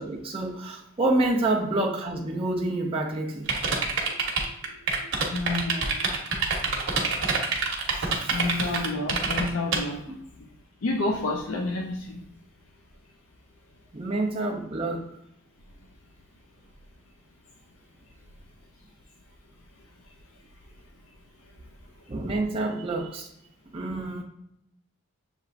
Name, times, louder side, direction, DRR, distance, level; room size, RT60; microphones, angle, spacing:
voice 1, 0.0-3.5 7.9-8.4 10.1-10.2 13.9-15.1 22.1-23.3 23.7-24.2, right 2 dB, 25° right, -1 dB, 0.5 m, -28 dB
sound 1, 3.5-9.8, right 5 dB, 55° right, 0.8 m, -25 dB
voice 2, 4.3-6.1 6.6-6.8 8.3-10.0 10.4-10.5 10.8-12.2, left 2 dB, 65° left, 1 dB, 0.5 m, -30 dB
6.7 x 2.9 x 2.5 m, 0.77 s
head